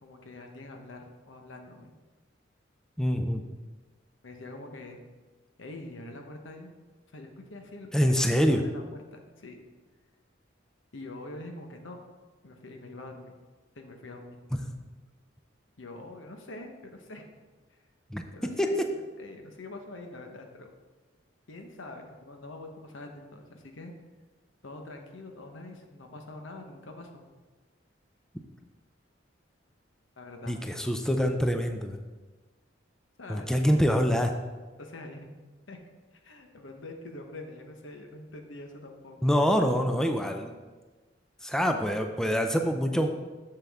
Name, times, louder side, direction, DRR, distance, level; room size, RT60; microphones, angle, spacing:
voice 1, 0.0-1.9 4.2-5.0 5.6-6.7 7.1-9.6 10.9-12.0 12.4-13.3 13.8-14.4 15.8-17.3 17.7-17.8 18.3-20.7 21.5-23.9 24.6-27.2 30.2-30.6 33.2-33.9 34.8-35.3 35.7-35.8 36.2-39.3, left 2 dB, 80° left, 4 dB, 1.0 m, -45 dB
voice 2, 3.0-3.4 7.9-8.6 18.1-18.2 18.6-18.9 30.5-32.0 33.3-34.3 39.2-40.5 41.4-43.1, equal, 5° left, 5 dB, 0.4 m, -25 dB
7.5 x 6.9 x 3.5 m, 1.3 s
head